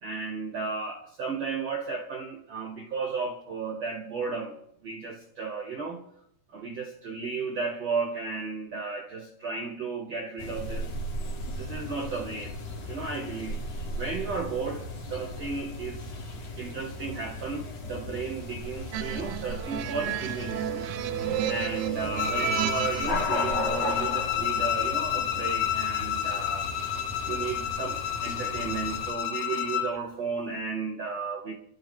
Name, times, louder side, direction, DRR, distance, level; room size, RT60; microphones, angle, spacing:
voice 1, 0.0-6.0 6.5-10.9 11.5-12.6 12.9-16.1 16.6-20.8 21.4-26.8 27.2-31.5, right 4 dB, 50° right, 2.1 m, -34 dB
sound 1, 10.4-29.1, left 1 dB, 45° left, 2.8 m, -36 dB
sound 2, 18.9-23.4, right 11 dB, 85° right, 2.9 m, -32 dB
Bowed string instrument, 22.2-29.9, left 10 dB, 75° left, 2.9 m, -30 dB
26.0 x 12.5 x 3.2 m
omnidirectional pair, 4.7 m